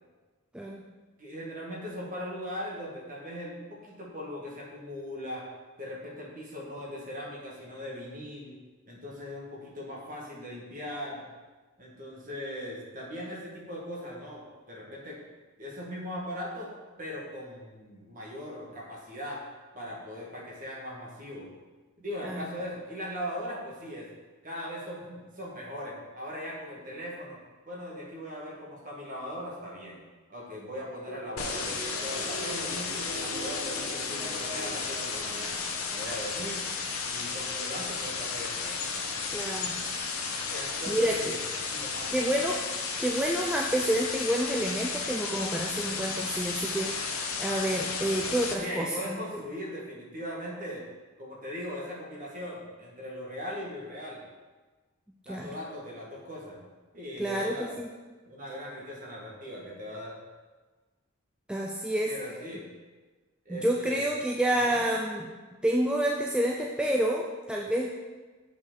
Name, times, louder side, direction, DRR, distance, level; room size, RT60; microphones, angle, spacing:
voice 1, 1.2-5.5 5.8-8.5 8.9-11.2 11.8-15.2 15.6-16.7 17.0-19.4 19.7-21.5 22.0-24.1 24.4-27.4 27.6-30.0 30.3-33.0 33.3-36.7 37.0-38.9 40.5-41.4 41.7-42.3 48.6-50.8 51.2-54.2 55.2-56.6 56.9-57.7 58.2-60.1 62.1-62.6 63.4-64.0 64.5-64.8, equal, 40° right, -4 dB, 1.6 m, -39 dB
sound 1, 31.1-36.2, right 1 dB, 20° left, 1.7 m, -42 dB
sound 2, 31.4-48.5, left 5 dB, 90° left, 0.8 m, -33 dB
voice 2, 39.3-39.8 40.9-41.3 42.1-49.2 55.3-55.5 57.2-57.9 61.5-62.1 63.5-65.3 65.6-67.9, right 1 dB, 5° right, -1 dB, 0.3 m, -29 dB
7.5 x 5.1 x 3.8 m, 1.3 s
head